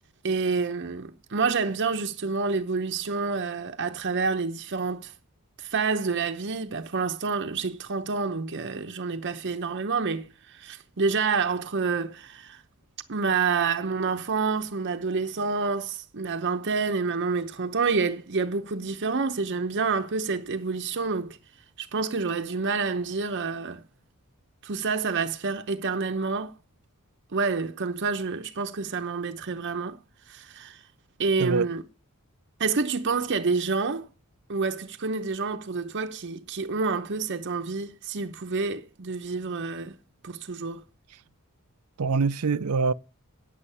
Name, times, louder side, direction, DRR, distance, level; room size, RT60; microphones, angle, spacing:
voice 1, 0.2-5.1 5.6-12.6 13.1-21.4 21.8-23.8 24.6-26.5 27.3-30.0 30.3-30.8 31.2-31.8 32.6-34.1 34.5-39.9 40.2-40.8, right 4 dB, 55° right, 0.8 m, -28 dB
voice 2, 31.4-31.7 41.1-41.2 42.0-42.9, right 4 dB, 80° right, 0.6 m, -24 dB
9.4 x 8.2 x 5.6 m
head